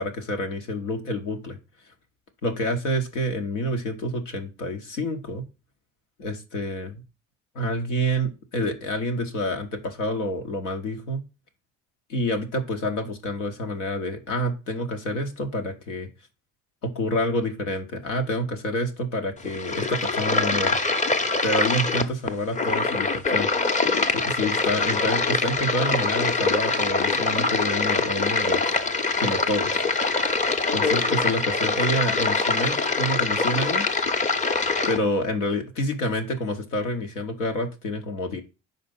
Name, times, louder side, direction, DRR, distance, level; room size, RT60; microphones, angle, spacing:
voice 1, 0.0-1.6 2.4-5.4 6.2-7.0 7.5-11.2 12.1-16.1 16.8-20.8 21.4-23.5 24.1-28.8 29.2-29.8 30.7-34.0 34.9-38.4, equal, 85° left, 4 dB, 0.9 m, -28 dB
sound 1, 19.4-35.0, left 3 dB, 20° left, 0.7 m, -24 dB
5.1 x 4.0 x 5.2 m, 0.29 s
hypercardioid pair, 45°, 36 cm